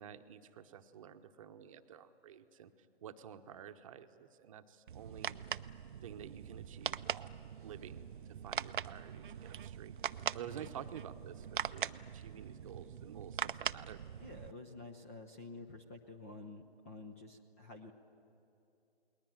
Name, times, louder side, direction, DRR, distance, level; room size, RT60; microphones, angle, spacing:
voice 1, 0.0-2.7 3.0-5.4 6.0-7.3 7.6-8.0 8.4-9.9 10.3-14.0, right 9 dB, 30° right, 8 dB, 1.0 m, -50 dB
sound 1, 4.9-14.5, right 8 dB, 50° right, 0.6 m, -42 dB
voice 2, 14.2-17.9, left 2 dB, 15° left, 5 dB, 0.5 m, -50 dB
29.5 x 20.5 x 9.2 m, 2.7 s
hypercardioid pair, 145°, 33 cm